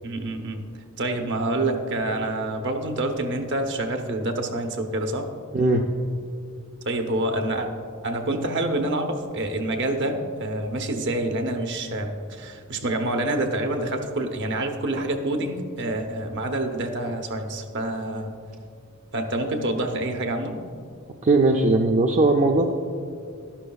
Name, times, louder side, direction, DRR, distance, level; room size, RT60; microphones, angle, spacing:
voice 1, 0.0-0.6 1.0-5.3 6.8-7.7 8.0-18.3 19.1-20.6, right 1 dB, 55° right, 5 dB, 0.9 m, -27 dB
voice 2, 5.5-5.8 21.2-22.6, right 2 dB, 35° right, 2 dB, 0.4 m, -19 dB
12.0 x 11.5 x 2.4 m, 2.3 s
head